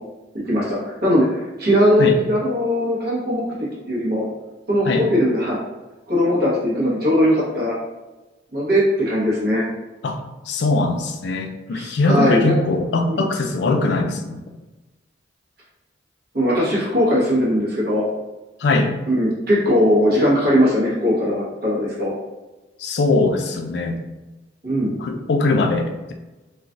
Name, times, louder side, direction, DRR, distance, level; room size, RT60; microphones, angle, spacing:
voice 1, 0.5-3.4 3.9-4.2 4.7-5.6 6.1-7.8 8.5-9.7 11.7-12.5 13.1-13.2 16.3-18.0 19.1-22.1 24.6-25.0, equal, 55° right, -7 dB, 1.2 m, -19 dB
voice 2, 10.5-14.4 18.6-18.9 22.8-24.0 25.0-26.1, left 2 dB, 60° left, 4 dB, 0.4 m, -21 dB
3.1 x 2.3 x 2.5 m, 1.1 s
head